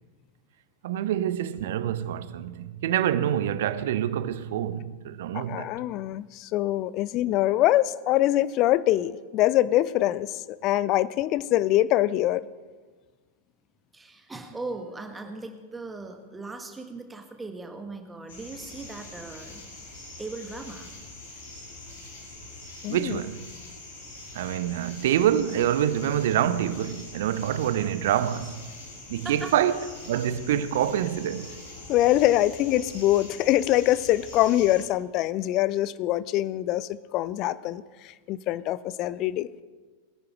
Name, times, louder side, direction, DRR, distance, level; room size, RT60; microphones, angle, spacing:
voice 1, 0.8-5.7 22.9-23.5 24.3-28.6 29.1-31.6, right 10 dB, 55° right, 0.6 m, -26 dB
voice 2, 5.3-10.4 10.6-12.4 22.8-23.2 31.9-37.8 38.3-39.5, left 14 dB, 40° left, 0.5 m, -24 dB
voice 3, 13.9-19.7 20.2-20.9 29.2-29.5, right 3 dB, 10° right, 1.5 m, -39 dB
sound 1, 18.3-34.8, left 2 dB, 60° left, 3.9 m, -44 dB
20.5 x 9.7 x 4.6 m
figure-of-eight pair, 90°, 0 cm